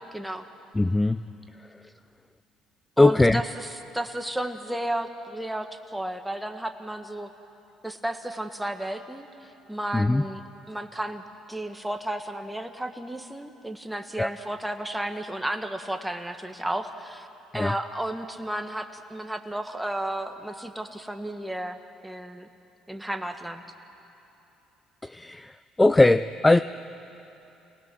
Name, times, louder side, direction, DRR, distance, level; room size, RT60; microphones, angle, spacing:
voice 1, 0.1-0.5 3.0-7.3 7.8-11.2 11.5-17.3 17.5-22.5 22.9-23.6, right 1 dB, 5° right, 6 dB, 1.6 m, -33 dB
voice 2, 0.8-1.2 3.0-3.4 9.9-10.2 14.2-14.3 17.6-17.7 25.0-25.5 25.8-26.6, left 2 dB, 15° left, 13 dB, 0.4 m, -19 dB
29.0 x 19.5 x 6.2 m, 2.9 s
supercardioid pair, 80°, 0 cm